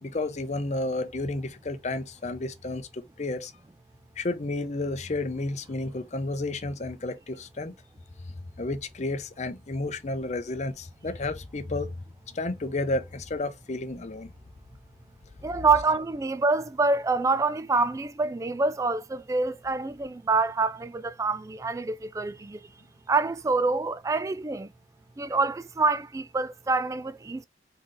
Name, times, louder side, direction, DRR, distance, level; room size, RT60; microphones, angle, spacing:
voice 1, 0.0-3.5 4.2-7.7 8.6-12.0 12.3-14.3, left 2 dB, 40° left, 0.6 m, -31 dB
voice 2, 15.4-22.6 23.1-24.7 25.2-27.4, right 3 dB, 20° right, 0.3 m, -26 dB
3.9 x 3.8 x 3.2 m
head